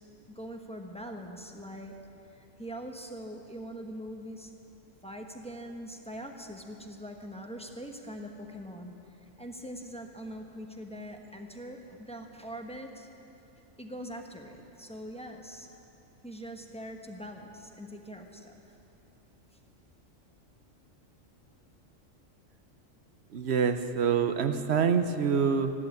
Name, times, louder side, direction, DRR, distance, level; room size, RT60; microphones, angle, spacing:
voice 1, 0.3-1.9 2.4-4.5 5.0-8.9 9.4-13.1 13.8-15.7 16.2-18.5, equal, 5° left, 3 dB, 1.0 m, -42 dB
voice 2, 23.3-25.7, right 6 dB, 60° right, 9 dB, 1.0 m, -26 dB
14.0 x 11.5 x 8.5 m, 2.8 s
omnidirectional pair, 1.3 m